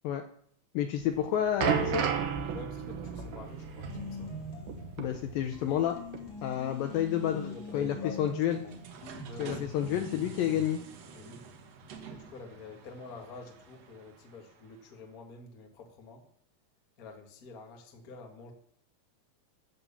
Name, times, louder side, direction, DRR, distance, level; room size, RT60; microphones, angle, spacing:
voice 1, 0.7-2.1 5.0-6.0 6.4-7.4 7.7-8.6 9.4-10.8, left 10 dB, 80° left, 6 dB, 2.1 m, -30 dB
sound 1, 1.0-5.9 6.1-6.3 7.0-7.1, right 7 dB, 65° right, 2.3 m, -33 dB
voice 2, 2.5-4.3 7.2-8.8 9.3-9.9 11.1-11.4 12.1-16.2 17.0-18.5, left 4 dB, 45° left, 2 dB, 1.1 m, -47 dB
sound 2, 3.9-5.0 5.5-10.7, left 2 dB, 30° left, 2.4 m, -43 dB
sound 3, 4.5-15.2, right 5 dB, 85° right, 1.4 m, -51 dB
11.0 x 7.1 x 7.0 m, 0.65 s
omnidirectional pair, 4.7 m